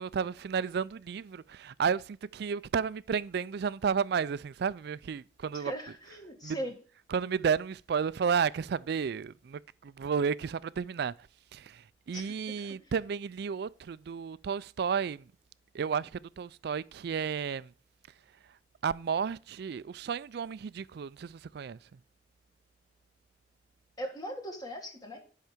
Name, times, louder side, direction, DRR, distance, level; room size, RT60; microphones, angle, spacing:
voice 1, 0.0-5.7 6.4-6.6 7.1-11.1 11.5-15.3 15.7-17.7 18.8-21.8, right 6 dB, 65° right, 0.4 m, -32 dB
voice 2, 5.5-6.8 12.1-12.8 24.0-25.2, right 1 dB, 25° left, 1.8 m, -39 dB
11.0 x 5.7 x 5.0 m
head